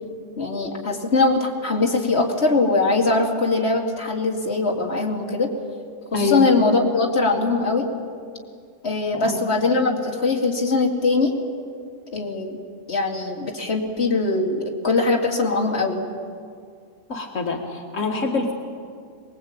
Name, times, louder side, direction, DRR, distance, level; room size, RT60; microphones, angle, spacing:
voice 1, 0.4-5.5 6.1-7.9 8.8-11.4 12.1-12.6 12.9-16.0, left 3 dB, 55° left, 0 dB, 2.8 m, -21 dB
voice 2, 6.1-6.5 9.1-9.5 17.1-18.5, left 4 dB, 85° left, 1 dB, 2.3 m, -25 dB
23.5 x 21.0 x 8.8 m, 2.2 s
omnidirectional pair, 1.3 m